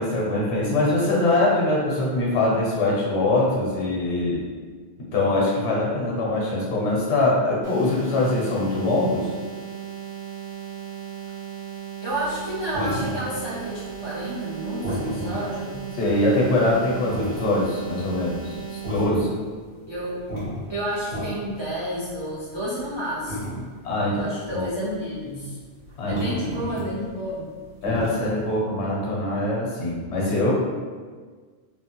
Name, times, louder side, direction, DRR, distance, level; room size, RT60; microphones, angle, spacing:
voice 1, 0.0-4.4 5.1-9.3 16.0-19.3 23.8-24.3 24.5-24.6 26.0-26.2 27.8-30.5, left 2 dB, 80° left, -3 dB, 1.0 m, -23 dB
sound 1, 7.6-19.0, right 9 dB, 15° left, 0.6 m, -36 dB
voice 2, 12.0-15.8 19.9-20.2 20.7-23.7 24.1-25.6 26.1-27.5, right 1 dB, 35° right, -8 dB, 0.4 m, -31 dB
sound 2, 12.2-13.6 13.9-28.5, equal, 55° right, 1.5 m, -33 dB
3.1 x 2.1 x 2.9 m, 1.5 s
omnidirectional pair, 1.1 m